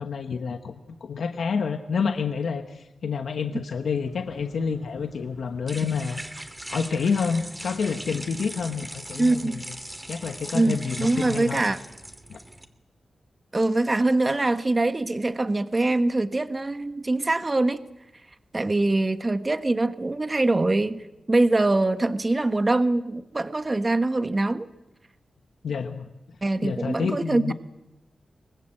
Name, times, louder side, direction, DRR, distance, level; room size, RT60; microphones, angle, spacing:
voice 1, 0.0-6.2 6.7-9.6 10.1-11.6 12.3-12.4 25.6-26.1 26.6-27.5, left 5 dB, 80° left, 6 dB, 1.1 m, -28 dB
sound 1, 4.1-12.6, right 1 dB, 15° right, 2.8 m, -40 dB
voice 2, 9.2-9.6 10.5-11.8 13.5-17.8 18.5-24.7 26.4-27.5, right 2 dB, 35° right, 10 dB, 1.2 m, -23 dB
24.5 x 19.5 x 7.7 m, 0.96 s
cardioid pair, 55°, 0 cm